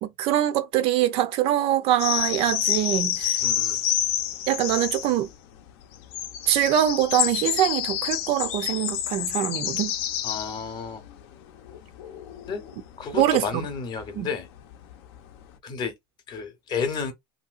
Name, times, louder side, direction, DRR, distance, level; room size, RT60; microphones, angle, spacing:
voice 1, 0.0-3.4 4.5-5.3 6.5-9.9 13.1-13.6 14.2-14.3, right 12 dB, 45° right, 0.4 m, -23 dB
sound 1, 2.0-5.4 5.9-13.7 14.0-15.3, left 11 dB, 70° left, 0.6 m, -28 dB
voice 2, 3.4-3.8 10.2-11.0 12.5-12.6 13.0-14.5 15.6-15.9 16.3-17.1, left 5 dB, 30° left, 0.8 m, -31 dB
3.0 x 2.7 x 2.4 m
cardioid pair, 165°, 14 cm